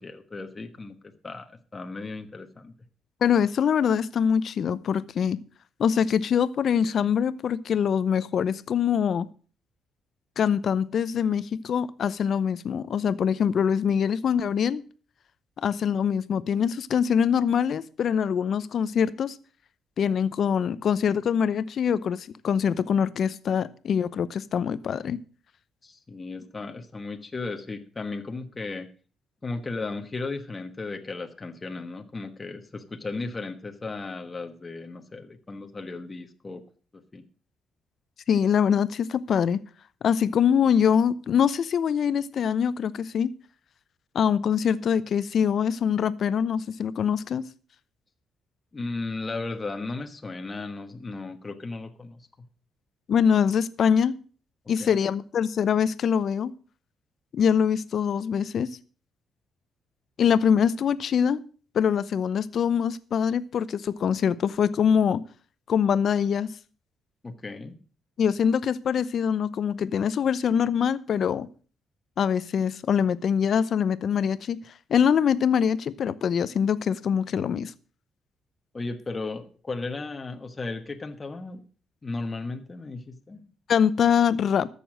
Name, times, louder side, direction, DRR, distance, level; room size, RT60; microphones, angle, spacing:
voice 1, 0.0-2.7 25.8-28.9 29.4-36.6 36.9-37.3 48.7-52.3 54.8-54.9 67.2-67.8 78.7-81.6 82.0-83.5, left 3 dB, 25° left, 1.3 m, -35 dB
voice 2, 3.2-5.4 5.8-9.3 10.4-14.8 15.6-19.4 20.0-25.2 38.3-39.6 40.0-43.3 44.1-47.4 53.1-54.1 54.7-56.5 57.3-58.7 60.2-61.4 61.7-65.2 65.7-66.5 68.2-71.5 72.2-74.6 74.9-77.7 83.7-84.7, left 7 dB, 60° left, 0.8 m, -24 dB
13.5 x 6.9 x 6.4 m
cardioid pair, 90°, 0 cm